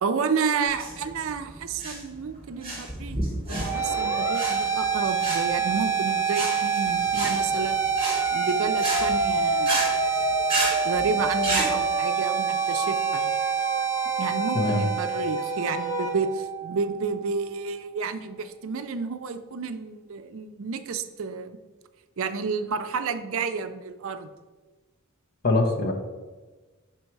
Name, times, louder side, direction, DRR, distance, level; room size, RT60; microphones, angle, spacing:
voice 1, 0.0-3.2 3.5-7.8 8.3-9.9 10.8-13.3 14.2-21.6 22.2-24.3, right 5 dB, 60° right, 9 dB, 0.4 m, -30 dB
sound 1, 0.7-11.7, right 2 dB, 25° right, 2.3 m, -31 dB
sound 2, 3.5-17.5, right 8 dB, 10° right, 0.5 m, -27 dB
Siren, 3.7-16.1, left 1 dB, 70° left, 1.8 m, -32 dB
voice 2, 25.4-25.9, left 2 dB, 45° left, 3 dB, 0.9 m, -23 dB
6.4 x 4.5 x 4.6 m, 1.3 s
head